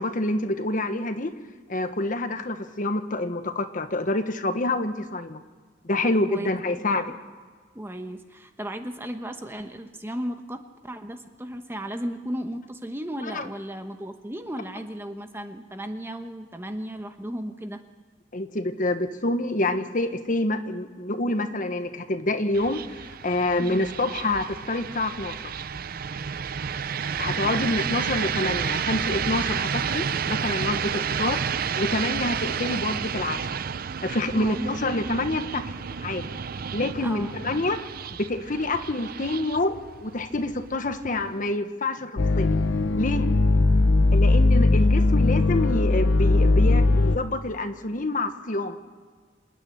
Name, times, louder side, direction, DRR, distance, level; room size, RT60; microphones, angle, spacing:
voice 1, 0.0-1.3 1.7-5.4 5.8-7.1 13.3-13.4 18.3-22.8 23.2-25.5 27.2-31.4 31.8-33.5 34.0-35.6 36.0-36.3 36.7-37.8 38.1-42.1 42.4-42.6 43.0-43.3 44.1-48.8, left 2 dB, 45° left, 8 dB, 1.3 m, -27 dB
voice 2, 6.0-6.8 7.7-17.8 23.6-23.9 34.4-34.7 37.0-37.3, equal, 15° right, 6 dB, 1.1 m, -35 dB
sound 1, 22.5-41.5, right 7 dB, 50° right, 0.5 m, -31 dB
sound 2, 42.2-47.2, left 2 dB, 85° left, 0.7 m, -19 dB
27.5 x 9.9 x 9.9 m, 1.6 s
head